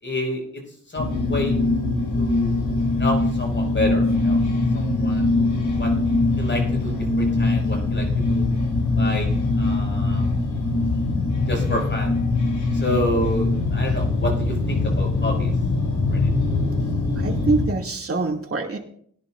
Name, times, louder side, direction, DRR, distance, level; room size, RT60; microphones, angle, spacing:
voice 1, 0.0-0.4 0.9-1.6 2.1-4.4 4.7-5.3 5.8-5.9 6.4-8.5 8.9-9.3 9.6-10.3 11.5-12.1 12.7-15.5 16.1-16.3, left 1 dB, 40° left, 1 dB, 5.9 m, -29 dB
sound 1, 1.0-17.7, left 2 dB, 75° left, 6.9 m, -22 dB
voice 2, 17.2-18.8, right 3 dB, 50° right, 0 dB, 2.7 m, -25 dB
20.5 x 11.0 x 2.6 m, 0.62 s
cardioid pair, 80°, 30 cm